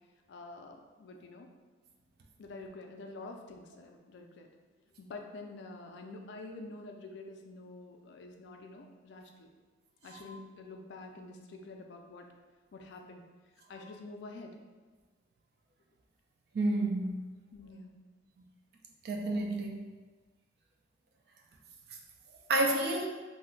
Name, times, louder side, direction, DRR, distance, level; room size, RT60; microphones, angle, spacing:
voice 1, 0.3-1.5 2.4-4.5 5.0-9.5 10.0-12.3 12.7-13.2 13.7-14.6 17.5-18.0, left 2 dB, 65° left, 3 dB, 0.3 m, -47 dB
voice 2, 16.5-17.3 19.0-19.9 22.5-23.1, right 2 dB, 55° right, 2 dB, 0.4 m, -30 dB
2.5 x 2.1 x 3.7 m, 1.3 s
head